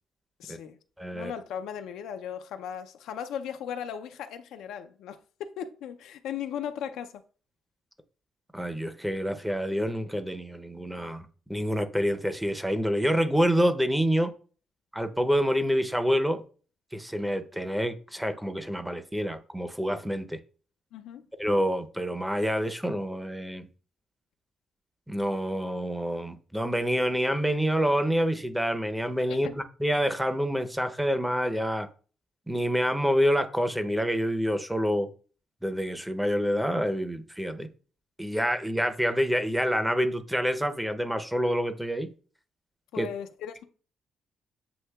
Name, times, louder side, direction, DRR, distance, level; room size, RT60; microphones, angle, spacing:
voice 1, 0.4-0.8 1.1-7.2 20.9-21.3 29.3-29.6 42.9-43.6, left 8 dB, 85° left, 0.4 m, -37 dB
voice 2, 1.0-1.3 8.5-14.3 14.9-16.4 16.9-20.4 21.4-23.7 25.1-31.9 32.5-35.1 35.6-37.7 38.2-42.1 43.0-43.1, equal, 5° right, 0.6 m, -27 dB
7.8 x 2.7 x 2.3 m
cardioid pair, 90°, 0 cm